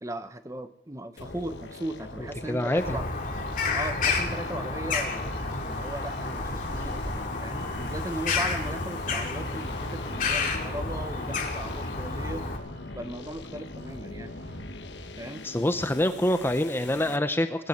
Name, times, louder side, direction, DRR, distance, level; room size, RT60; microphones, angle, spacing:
voice 1, 0.0-3.1 3.7-12.4 12.9-14.4 15.2-15.4, right 1 dB, 20° right, 10 dB, 0.9 m, -38 dB
sound 1, 1.2-17.2, left 2 dB, 75° left, 1.2 m, -43 dB
voice 2, 2.5-3.0 15.4-17.7, left 1 dB, 10° left, 9 dB, 0.8 m, -26 dB
Bird vocalization bird call bird song, 2.8-12.6, left 3 dB, 50° left, 2.8 m, -30 dB
sound 2, 4.0-15.2, equal, 80° right, 6.4 m, -48 dB
20.5 x 8.5 x 8.0 m, 0.82 s
head